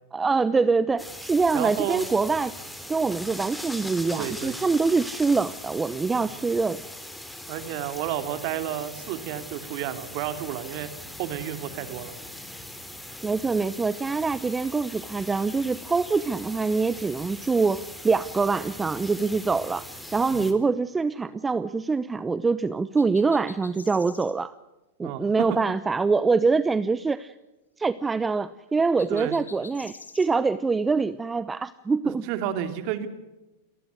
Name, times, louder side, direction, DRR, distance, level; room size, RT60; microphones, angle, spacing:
voice 1, 0.1-2.5 2.9-6.8 13.2-24.6 25.0-27.3 27.8-32.3, right 4 dB, 15° right, 15 dB, 0.8 m, -24 dB
sound 1, 1.0-20.5, left 1 dB, 5° left, 3.4 m, -40 dB
voice 2, 1.5-2.0 4.1-4.7 6.1-6.3 7.5-10.9 11.2-12.1 20.3-20.5 25.0-25.2 25.5-25.6 29.1-29.4 32.3-33.1, right 11 dB, 50° right, 9 dB, 2.7 m, -31 dB
sound 2, 23.0-24.3 29.0-30.3, left 4 dB, 90° left, 2.4 m, -46 dB
29.0 x 19.0 x 6.4 m, 1.0 s
hypercardioid pair, 100°, 0 cm